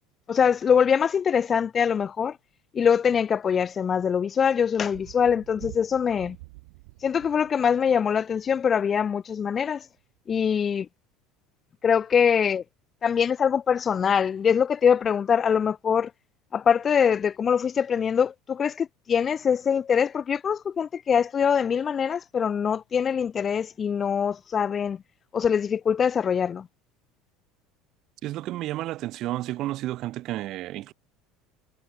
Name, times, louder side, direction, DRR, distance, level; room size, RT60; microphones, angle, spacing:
voice 1, 0.3-2.4 2.7-6.4 7.0-9.8 10.3-10.9 11.8-12.6 13.0-16.1 16.5-25.0 25.3-26.7, left 7 dB, 25° left, 0.4 m, -23 dB
Thunder, 4.8-8.7 10.0-10.1, right 25 dB, 85° right, 2.9 m, -47 dB
voice 2, 28.2-30.9, right 15 dB, 45° right, 0.5 m, -31 dB
cardioid pair, 150°, 0 cm